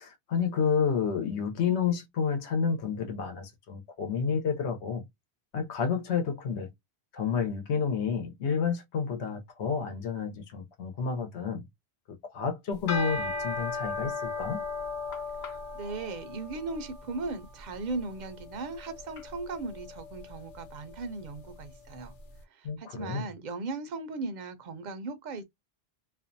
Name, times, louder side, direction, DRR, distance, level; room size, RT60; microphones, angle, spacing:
voice 1, 0.0-5.1 5.5-6.7 7.1-11.6 12.3-14.6 22.6-23.3, left 6 dB, 90° left, 1.0 m, -30 dB
sound 1, 12.7-22.1, left 3 dB, 55° left, 0.7 m, -38 dB
voice 2, 15.7-22.1 22.5-25.4, right 3 dB, 55° right, 0.5 m, -37 dB
2.5 x 2.1 x 2.5 m
omnidirectional pair, 1.1 m